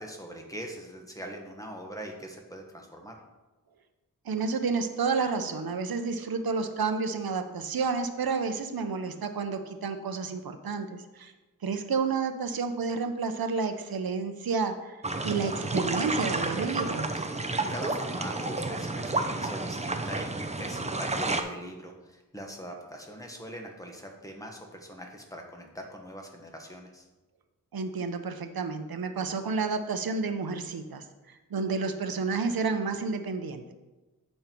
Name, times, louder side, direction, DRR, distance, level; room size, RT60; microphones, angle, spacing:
voice 1, 0.0-3.2 17.3-27.1, equal, 10° left, 2 dB, 1.3 m, -42 dB
voice 2, 4.3-11.3 11.6-15.0 15.2-17.1 27.7-33.7, right 4 dB, 85° right, 8 dB, 0.8 m, -30 dB
sound 1, 15.0-21.4, right 2 dB, 20° right, 0.6 m, -31 dB
8.7 x 5.4 x 4.5 m, 1.1 s
wide cardioid pair, 90°, 35 cm